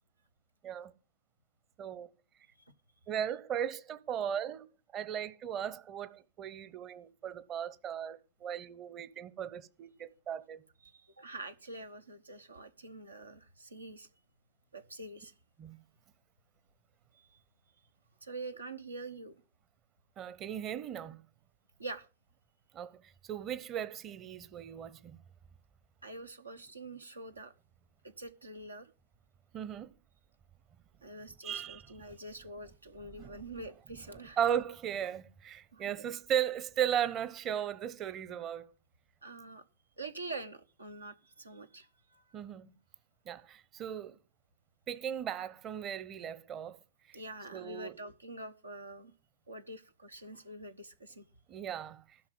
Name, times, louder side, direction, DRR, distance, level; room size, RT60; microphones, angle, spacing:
voice 1, 1.8-2.1 3.1-4.7 4.9-10.6 15.6-15.8 20.2-21.2 22.7-23.0 23.3-25.2 29.5-29.9 31.4-32.0 33.2-33.7 34.4-38.7 42.3-42.7 43.3-44.2 44.9-46.8 47.1-47.2 47.5-47.9 51.5-52.0, right 9 dB, 30° right, 0.9 m, -37 dB
voice 2, 10.8-14.1 14.7-15.3 17.1-17.3 18.2-19.4 21.8-22.1 26.0-27.5 28.2-28.9 31.0-34.4 35.7-36.0 39.2-39.6 40.0-42.2 47.1-49.1 49.5-51.2, right 2 dB, 80° right, 1.0 m, -45 dB
12.0 x 5.8 x 7.7 m
figure-of-eight pair, 90°, 0 cm